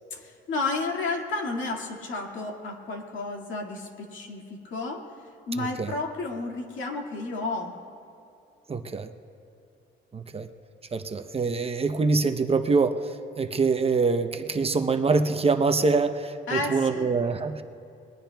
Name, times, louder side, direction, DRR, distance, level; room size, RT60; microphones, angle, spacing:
voice 1, 0.1-5.1 5.5-7.8 16.5-17.0, left 3 dB, 75° left, 1 dB, 2.0 m, -32 dB
voice 2, 5.6-6.0 8.7-9.1 10.1-10.5 10.9-17.6, right 4 dB, 30° right, 7 dB, 0.7 m, -25 dB
25.5 x 21.0 x 2.3 m, 2.6 s
cardioid pair, 90°, 20 cm